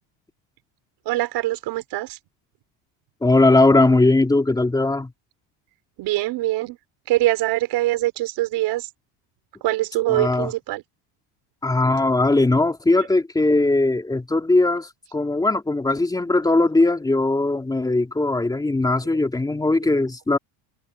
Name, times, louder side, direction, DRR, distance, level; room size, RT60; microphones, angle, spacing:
voice 1, 1.0-2.2 6.0-6.8 7.1-8.9 9.6-10.8 20.0-20.1, right 17 dB, 55° right, 4.8 m, -23 dB
voice 2, 3.2-5.1 10.1-10.5 11.6-20.4, left 2 dB, 10° left, 3.7 m, -19 dB
cardioid pair, 175°, 48 cm